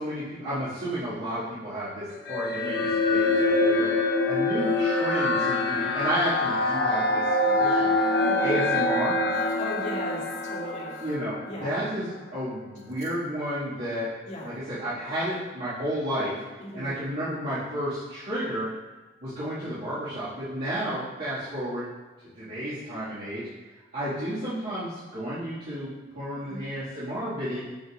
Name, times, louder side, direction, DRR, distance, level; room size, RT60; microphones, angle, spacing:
voice 1, 0.0-3.9 4.2-7.9 8.4-9.2 11.0-11.4 11.6-14.1 14.4-16.4 16.7-18.7 19.2-21.9 22.4-23.5 23.9-27.6, equal, 50° right, -13 dB, 2.0 m, -32 dB
sound 1, 2.3-11.8, left 2 dB, 55° left, 0.9 m, -25 dB
voice 2, 8.3-8.6 9.3-11.1 11.5-11.7 14.2-14.5 16.6-16.9 26.3-26.6, left 1 dB, 35° left, -6 dB, 2.1 m, -37 dB
12.0 x 5.4 x 2.5 m, 1.2 s
head